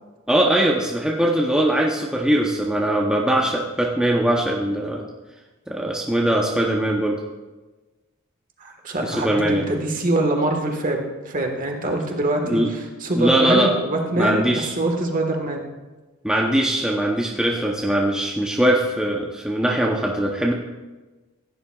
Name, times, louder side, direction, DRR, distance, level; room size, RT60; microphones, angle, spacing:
voice 1, 0.3-5.0 5.7-7.2 9.0-9.7 12.5-12.7 13.1-13.7 14.2-14.7 16.2-20.5, right 1 dB, 5° right, -2 dB, 0.7 m, -21 dB
voice 2, 8.6-15.6, right 2 dB, 40° right, 3 dB, 1.4 m, -24 dB
16.0 x 10.0 x 2.3 m, 1.2 s
head